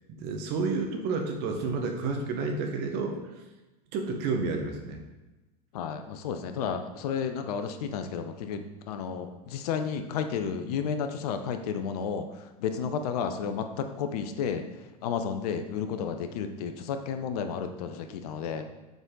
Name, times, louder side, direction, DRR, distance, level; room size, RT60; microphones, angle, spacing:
voice 1, 0.1-3.2 3.9-5.0, right 4 dB, 55° right, 3 dB, 1.2 m, -30 dB
voice 2, 5.7-12.3 12.6-14.6 15.0-18.6, left 7 dB, 70° left, 8 dB, 0.7 m, -32 dB
6.9 x 4.0 x 3.8 m, 1.1 s
hypercardioid pair, 90°, 21 cm